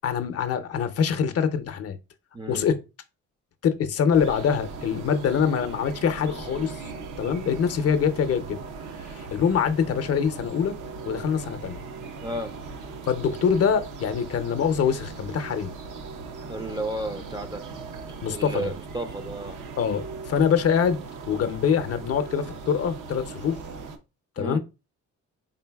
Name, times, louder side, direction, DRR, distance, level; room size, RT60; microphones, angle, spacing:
voice 1, 0.0-2.0 2.5-2.8 3.6-6.9 7.2-8.6 9.1-10.7 11.1-11.8 13.1-15.7 18.2-18.7 19.8-21.0 21.3-23.6 24.4-24.6, left 7 dB, 55° left, 0.5 m, -24 dB
voice 2, 2.3-2.7 12.2-12.6 16.5-17.6 18.3-19.6 24.4-24.6, right 1 dB, 15° right, 0.4 m, -33 dB
sound 1, 4.1-24.0, right 4 dB, 80° right, 0.7 m, -39 dB
3.9 x 3.8 x 2.2 m
cardioid pair, 90°, 30 cm